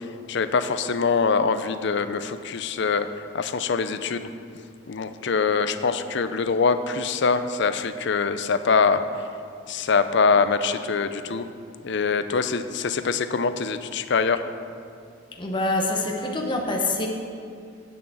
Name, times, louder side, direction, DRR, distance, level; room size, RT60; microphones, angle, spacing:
voice 1, 0.0-3.1 3.3-4.3 4.9-9.0 9.7-11.5 11.8-14.4, left 5 dB, 60° left, 11 dB, 0.5 m, -24 dB
voice 2, 15.3-17.1, left 2 dB, 25° left, 0 dB, 0.9 m, -25 dB
8.5 x 7.0 x 7.7 m, 2.4 s
head